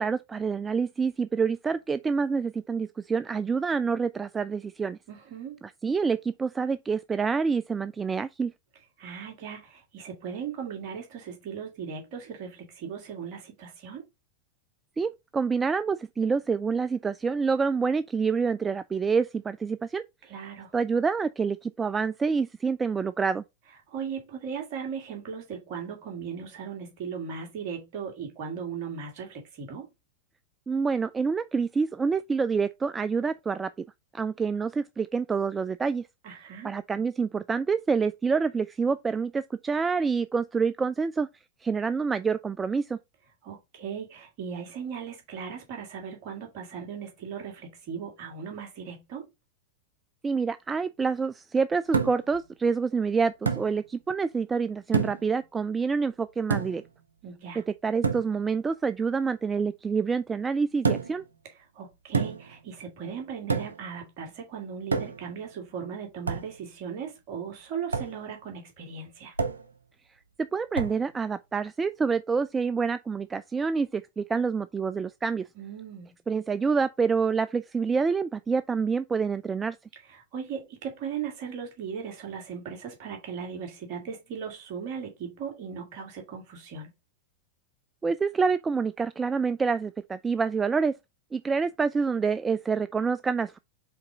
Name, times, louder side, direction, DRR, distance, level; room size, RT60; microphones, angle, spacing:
voice 1, 0.0-5.0 5.6-8.5 15.0-20.0 20.7-23.4 30.7-33.7 34.1-36.1 36.6-41.3 41.6-43.0 50.2-56.8 57.8-61.2 70.4-75.5 76.3-79.8 88.0-90.9 91.3-93.6, right 5 dB, 15° right, 0.3 m, -27 dB
voice 2, 5.1-5.6 9.0-14.0 20.2-20.7 23.9-29.9 36.2-36.7 43.4-49.3 57.2-57.6 61.7-69.3 75.6-76.1 80.1-86.9, right 7 dB, 45° right, 2.5 m, -38 dB
sound 1, 51.9-52.4 53.5-53.7 54.9-55.3 56.5-56.9 58.0-58.3 60.8-61.2 62.1-62.6 63.5-63.9 64.9-65.3 66.3-66.5 67.9-68.2 69.4-69.7 70.7-71.0, right 5 dB, 75° right, 0.9 m, -28 dB
5.1 x 4.1 x 4.9 m
figure-of-eight pair, 90°, 0 cm